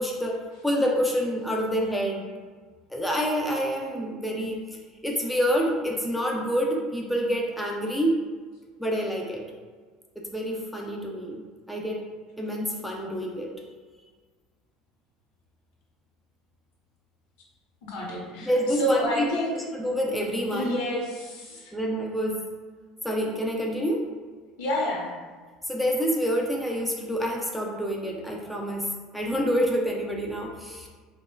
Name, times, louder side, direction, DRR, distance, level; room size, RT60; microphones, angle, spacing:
voice 1, 0.0-2.3 2.9-4.6 5.0-8.3 8.8-9.4 10.2-11.4 11.7-12.0 12.4-13.5 18.4-20.8 21.7-22.4 23.0-24.1 25.7-30.9, equal, ahead, -1 dB, 0.3 m, -27 dB
voice 2, 17.9-19.6 20.5-21.7 24.6-25.1, left 1 dB, 90° left, -3 dB, 1.0 m, -29 dB
4.9 x 2.3 x 2.2 m, 1.5 s
cardioid pair, 170°, 0 cm